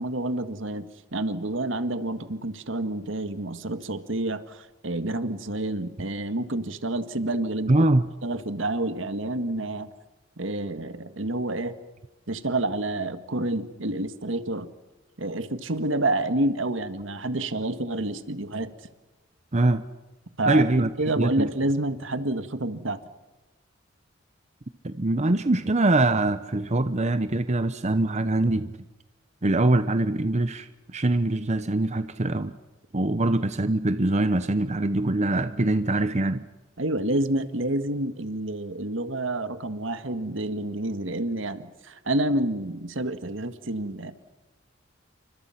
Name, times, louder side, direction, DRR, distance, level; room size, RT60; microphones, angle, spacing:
voice 1, 0.0-7.7 8.2-9.9 10.4-11.8 12.3-14.7 15.2-18.7 20.4-23.0 36.8-44.1, right 1 dB, 70° right, 1.8 m, -28 dB
voice 2, 7.7-8.1 19.5-19.8 20.5-20.9 21.2-21.5 24.8-28.8 29.4-32.6 32.9-36.5, right 2 dB, 35° right, 0.9 m, -23 dB
29.5 x 25.5 x 5.9 m
head